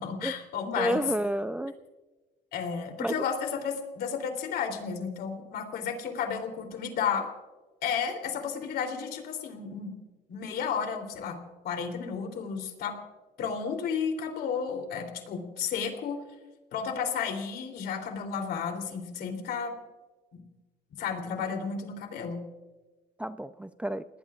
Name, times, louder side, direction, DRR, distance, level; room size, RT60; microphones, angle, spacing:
voice 1, 0.0-1.0 2.5-7.3 7.8-9.9 10.3-11.4 11.6-13.0 13.4-16.2 16.7-19.7 20.3-20.4 21.0-22.4, left 6 dB, 70° left, 4 dB, 3.3 m, -32 dB
voice 2, 0.8-1.7 3.0-3.2 21.4-21.5 23.2-24.1, right 1 dB, 5° right, 11 dB, 0.5 m, -30 dB
30.0 x 19.0 x 2.5 m, 1.2 s
cardioid pair, 110°, 17 cm